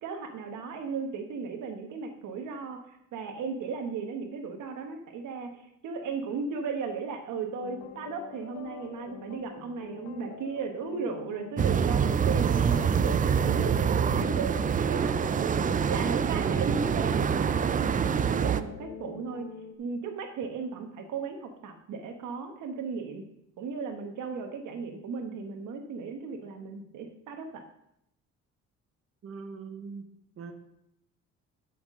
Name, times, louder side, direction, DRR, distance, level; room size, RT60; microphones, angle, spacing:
voice 1, 0.0-2.8 3.1-19.5 19.8-23.3 23.6-27.6, right 5 dB, 80° right, 5 dB, 1.1 m, -36 dB
sound 1, 7.6-19.8, left 7 dB, 60° left, 0.8 m, -44 dB
sound 2, 11.6-18.6, right 7 dB, 30° right, 0.3 m, -25 dB
voice 2, 29.2-30.1 30.4-30.5, right 5 dB, 45° right, 5 dB, 1.0 m, -41 dB
11.5 x 5.9 x 3.7 m, 0.78 s
cardioid pair, 90°, 30 cm